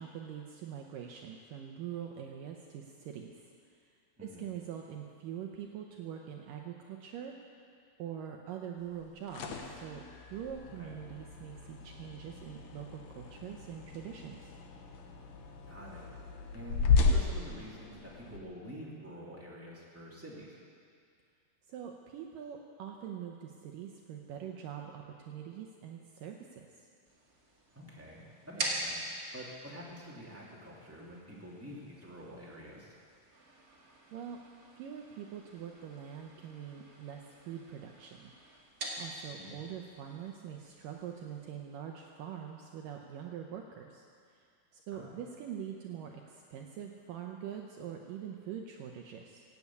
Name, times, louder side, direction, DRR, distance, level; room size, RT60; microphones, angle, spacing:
voice 1, 0.0-3.4 4.2-7.3 8.0-10.0 10.3-14.5 21.7-26.9 34.1-34.4 34.8-38.3 39.0-44.1 44.3-44.5 44.7-49.4, right 9 dB, 75° right, 2 dB, 2.1 m, -44 dB
voice 2, 4.2-4.5 10.8-10.9 15.7-16.1 16.5-20.6 27.7-29.0 29.3-32.9 39.3-39.5 44.9-45.1, equal, 5° right, -6 dB, 1.5 m, -48 dB
sound 1, 9.0-18.4, left 4 dB, 80° left, 1.5 m, -34 dB
sound 2, 27.1-41.4, right 1 dB, 35° right, 1.4 m, -45 dB
16.5 x 8.5 x 8.4 m, 2.2 s
omnidirectional pair, 4.7 m